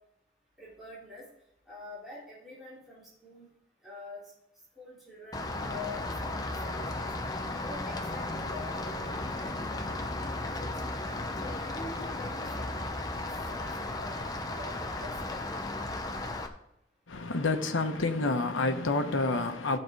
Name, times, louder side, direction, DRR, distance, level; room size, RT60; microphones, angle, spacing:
voice 1, 0.6-1.3 1.7-3.5 3.8-4.2 4.8-7.1 7.5-10.0 10.3-10.9 11.4-14.2 14.5-15.7, left 2 dB, ahead, 3.7 m, -46 dB
Rain, 5.3-16.5, left 2 dB, 20° left, 0.8 m, -35 dB
voice 2, 17.1-19.8, left 3 dB, 90° left, 1.0 m, -28 dB
15.0 x 6.6 x 4.6 m
head